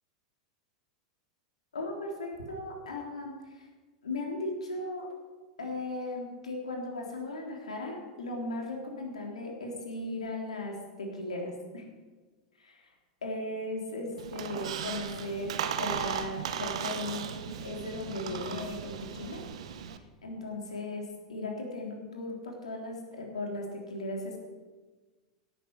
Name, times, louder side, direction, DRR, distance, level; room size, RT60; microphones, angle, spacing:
voice 1, 1.7-3.7 4.0-5.1 5.6-11.9 12.6-12.8 13.2-19.4 20.2-24.4, left 2 dB, 80° left, 0 dB, 3.6 m, -37 dB
Squeak, 14.2-20.0, right 8 dB, 65° right, 1.1 m, -36 dB
17.0 x 9.1 x 6.3 m, 1.3 s
figure-of-eight pair, 90°, 4 cm